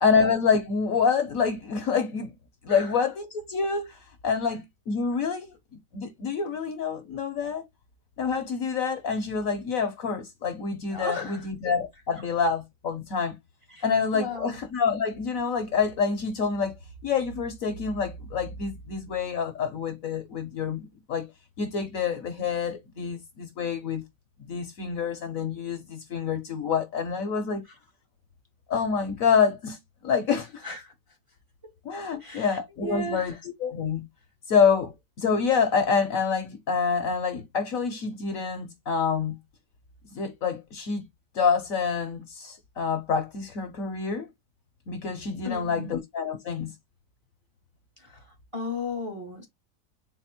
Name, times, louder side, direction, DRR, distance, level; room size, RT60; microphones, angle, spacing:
voice 1, 0.0-2.3 2.6-3.9 4.2-5.5 5.9-7.6 8.2-13.4 13.8-16.7 17.0-21.3 21.6-24.0 24.4-27.6 28.7-29.8 30.0-30.6 31.8-34.1 34.5-39.4 40.1-41.1 41.3-44.3 44.9-46.7, left 5 dB, 60° left, 1.1 m, -27 dB
voice 2, 10.9-11.4 13.7-13.8 14.1-14.6 30.6-30.9 32.2-33.3 45.4-45.9 48.0-48.2 48.5-49.5, left 2 dB, 20° right, 0.9 m, -35 dB
4.3 x 2.0 x 4.2 m
omnidirectional pair, 1.9 m